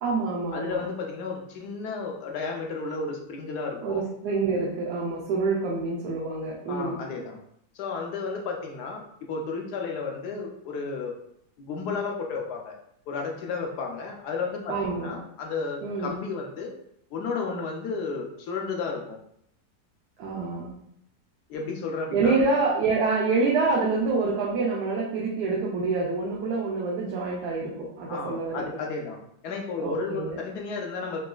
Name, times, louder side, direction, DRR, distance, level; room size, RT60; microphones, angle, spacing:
voice 1, 0.0-0.8 3.8-7.0 14.7-15.1 15.8-16.1 20.2-20.8 22.1-28.8 29.8-30.4, right 3 dB, 80° right, -5 dB, 1.2 m, -27 dB
voice 2, 0.5-4.0 6.7-7.4 7.7-9.0 9.3-11.1 11.6-12.7 13.1-16.7 17.1-19.2 21.5-22.4 28.1-31.2, left 4 dB, 90° left, 1 dB, 1.2 m, -33 dB
3.9 x 2.3 x 2.2 m, 0.70 s
omnidirectional pair, 1.7 m